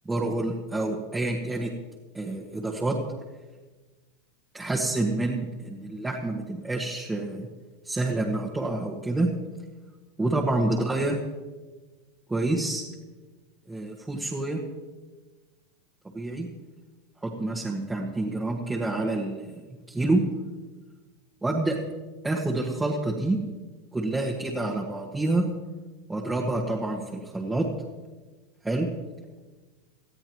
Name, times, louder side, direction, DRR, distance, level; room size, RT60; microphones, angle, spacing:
voice 1, 0.0-1.7 2.1-3.0 4.5-7.5 7.8-9.3 10.2-11.2 12.3-12.8 13.7-14.6 16.1-16.5 17.2-20.3 21.4-21.8 22.2-23.4 23.9-25.5 26.1-27.7 28.6-28.9, right 2 dB, 10° right, -3 dB, 1.6 m, -28 dB
19.0 x 13.0 x 3.1 m, 1.3 s
hypercardioid pair, 110°, 0 cm